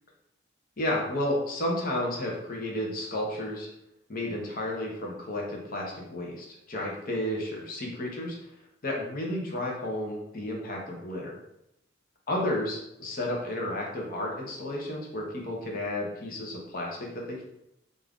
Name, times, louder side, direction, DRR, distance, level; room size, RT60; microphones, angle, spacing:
voice 1, 0.8-3.7 4.1-8.4 8.8-11.4 12.3-17.4, left 1 dB, 50° left, -1 dB, 0.7 m, -32 dB
2.6 x 2.4 x 3.4 m, 0.84 s
head